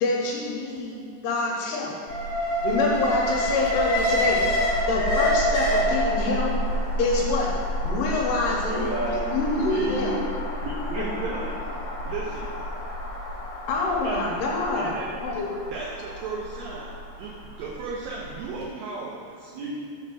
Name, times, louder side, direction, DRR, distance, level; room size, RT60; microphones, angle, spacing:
voice 1, 0.0-2.0 2.6-4.6 4.9-6.5 7.0-7.5 7.8-10.1 13.7-15.0 15.2-15.5, left 3 dB, 75° left, -2 dB, 2.6 m, -26 dB
Alarm, 2.1-18.2 18.5-18.6, left 1 dB, 60° left, 2.1 m, -28 dB
voice 2, 8.6-10.7 10.9-11.2 19.5-19.8, right 2 dB, 55° right, -10 dB, 2.9 m, -31 dB
voice 3, 10.6-11.4 12.0-12.6 14.0-14.2 14.7-15.1 15.7-16.9 17.2-19.5, right 4 dB, 90° right, -4 dB, 2.0 m, -35 dB
6.2 x 4.5 x 6.1 m, 2.3 s
omnidirectional pair, 5.0 m